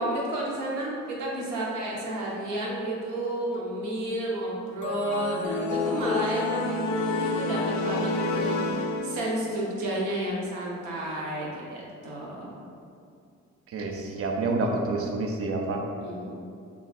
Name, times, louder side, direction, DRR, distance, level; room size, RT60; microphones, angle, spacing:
voice 1, 0.0-12.6 15.8-16.4, right 1 dB, 80° right, -4 dB, 0.9 m, -31 dB
sound 1, 4.8-9.5, left 3 dB, 70° left, 0.5 m, -29 dB
voice 2, 13.7-15.8, right 3 dB, 50° right, 1 dB, 0.6 m, -28 dB
3.0 x 2.3 x 4.1 m, 2.4 s
cardioid pair, 75°, 30 cm